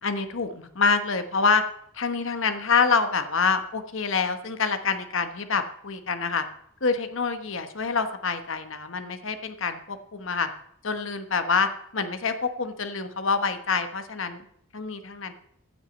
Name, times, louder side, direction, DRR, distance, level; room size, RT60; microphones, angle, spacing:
voice 1, 0.0-1.6 1.9-6.4 6.8-10.5 10.8-14.4 14.7-15.3, left 5 dB, 65° left, 9 dB, 1.2 m, -26 dB
15.0 x 6.2 x 8.1 m, 0.69 s
head